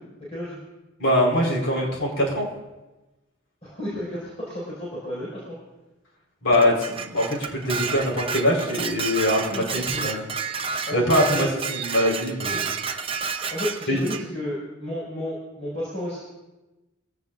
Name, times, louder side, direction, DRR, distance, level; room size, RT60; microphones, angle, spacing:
voice 1, 0.3-0.6 3.6-5.4 9.5-10.1 10.9-11.6 13.5-16.2, left 1 dB, 35° left, -8 dB, 5.8 m, -32 dB
voice 2, 1.0-2.5 6.4-10.2 10.9-12.6 13.9-14.0, left 1 dB, 70° left, -1 dB, 4.6 m, -23 dB
Dishes pots and pans, 6.5-14.2, right 5 dB, 30° right, 0.8 m, -30 dB
23.5 x 17.0 x 2.6 m, 1.1 s
head